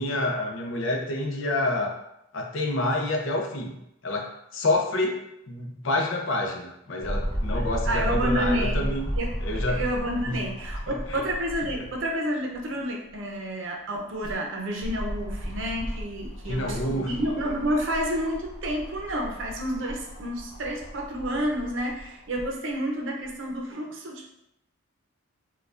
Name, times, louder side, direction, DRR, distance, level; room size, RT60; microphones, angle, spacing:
voice 1, 0.0-2.0 2.3-3.8 4.0-9.1 9.4-9.8 10.3-10.4 10.9-11.2 16.5-17.3, left 2 dB, 65° left, 1 dB, 0.5 m, -28 dB
sound 1, 7.0-12.1 12.5-12.6 13.9-22.5 23.3-23.4, equal, 20° left, 0.7 m, -33 dB
voice 2, 7.5-8.8 9.2-9.4 9.7-24.3, equal, 65° right, 0 dB, 0.6 m, -30 dB
4.4 x 2.2 x 2.4 m, 0.82 s
head